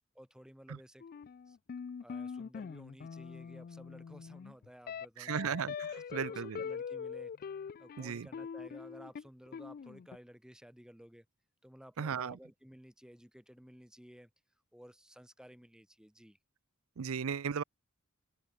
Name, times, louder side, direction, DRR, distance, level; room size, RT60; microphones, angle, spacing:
voice 1, 0.1-1.0 1.5-1.6 2.0-5.3 5.9-7.3 7.8-11.2 11.6-14.3 14.7-16.4, equal, 5° right, 1.7 m, -55 dB
sound 1, 1.0-10.2, left 6 dB, 45° left, 0.3 m, -43 dB
voice 2, 5.2-6.6 8.0-8.3 12.0-12.4 17.0-17.6, right 6 dB, 75° right, 0.5 m, -36 dB
open air
head